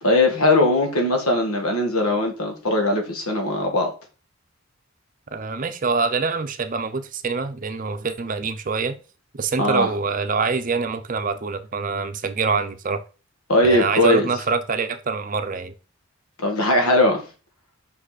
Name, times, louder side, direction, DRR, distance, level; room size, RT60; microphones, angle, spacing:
voice 1, 0.0-3.9 9.6-9.9 13.5-14.3 16.4-17.3, left 1 dB, 85° left, 1.9 m, -20 dB
voice 2, 5.3-8.9 9.3-13.0 13.6-15.7, right 4 dB, 40° right, 0.6 m, -25 dB
5.5 x 5.1 x 4.1 m
head